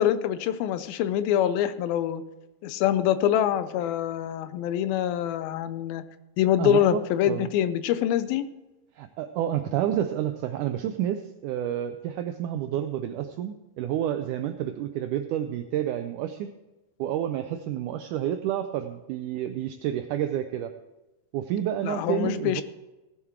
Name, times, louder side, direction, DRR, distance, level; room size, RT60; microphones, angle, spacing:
voice 1, 0.0-2.2 2.6-6.0 6.4-8.5 21.8-22.6, left 10 dB, 85° left, 13 dB, 2.4 m, -25 dB
voice 2, 6.6-7.0 7.3-7.5 9.0-16.5 17.0-20.7 21.3-22.6, right 11 dB, 85° right, 8 dB, 1.8 m, -29 dB
17.0 x 7.3 x 4.5 m, 1.0 s
omnidirectional pair, 4.2 m